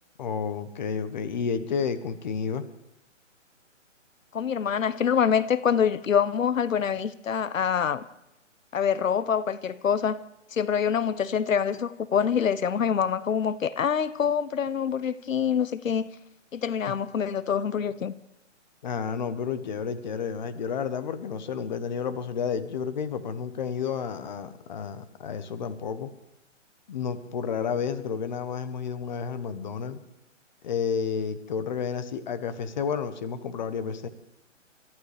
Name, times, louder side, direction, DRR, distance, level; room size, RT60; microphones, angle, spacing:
voice 1, 0.2-2.7 16.9-17.0 18.8-26.1 26.9-30.0 30.6-34.1, left 6 dB, 35° left, 1.0 m, -31 dB
voice 2, 4.3-8.0 8.7-10.2 10.5-16.1 16.5-18.1, left 7 dB, 85° left, 0.8 m, -25 dB
29.0 x 14.0 x 3.4 m
hypercardioid pair, 160°, 38 cm